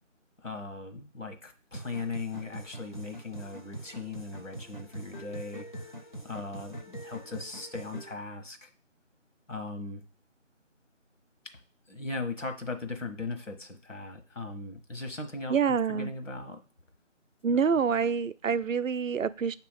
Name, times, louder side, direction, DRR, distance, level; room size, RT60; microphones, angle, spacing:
voice 1, 0.4-5.7 6.2-8.7 9.5-10.0 11.9-16.6 17.5-17.6, left 3 dB, 75° left, 6 dB, 1.3 m, -38 dB
sound 1, 1.7-8.1, right 1 dB, 40° left, 0.6 m, -43 dB
voice 2, 15.5-16.1 17.4-19.5, right 6 dB, 85° right, 14 dB, 0.5 m, -26 dB
6.8 x 3.0 x 5.1 m, 0.39 s
figure-of-eight pair, 170°, 38 cm